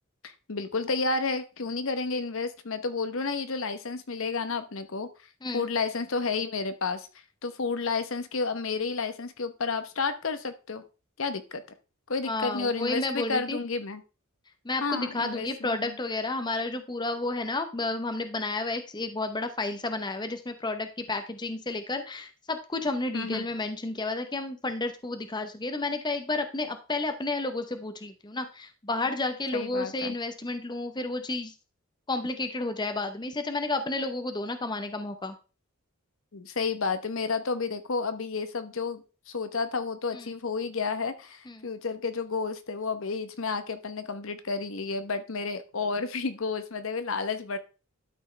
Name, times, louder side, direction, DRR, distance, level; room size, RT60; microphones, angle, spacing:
voice 1, 0.2-5.1 5.5-7.1 7.4-10.8 11.2-11.6 12.1-14.0 14.8-16.0 23.1-23.4 29.5-30.2 36.3-47.6, left 4 dB, 65° left, 10 dB, 0.9 m, -31 dB
voice 2, 12.2-13.6 14.6-31.5 32.1-35.3 40.1-40.4 41.5-41.7, left 2 dB, 20° left, 7 dB, 0.8 m, -31 dB
12.0 x 6.1 x 3.3 m, 0.33 s
head